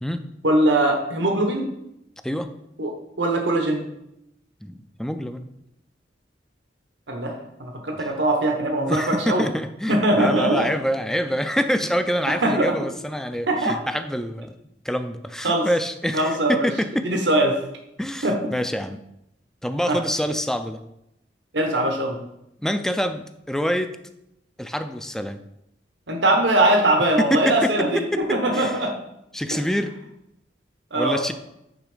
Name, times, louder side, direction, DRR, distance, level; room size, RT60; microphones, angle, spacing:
voice 1, 0.4-1.7 2.8-3.8 7.1-9.4 9.9-10.7 12.4-12.7 13.5-13.8 15.4-15.7 16.1-16.7 17.0-17.5 18.2-18.3 19.9-20.0 21.5-22.2 26.1-28.9 30.9-31.2, right 1 dB, 85° right, 3 dB, 1.2 m, -21 dB
voice 2, 4.6-5.4 8.9-14.5 14.8-17.2 18.0-19.0 19.6-20.8 22.6-23.9 24.6-25.4 27.2-27.7 28.5-28.8 29.3-29.9 31.0-31.3, equal, 5° left, 9 dB, 0.4 m, -26 dB
9.0 x 3.6 x 5.0 m, 0.82 s
head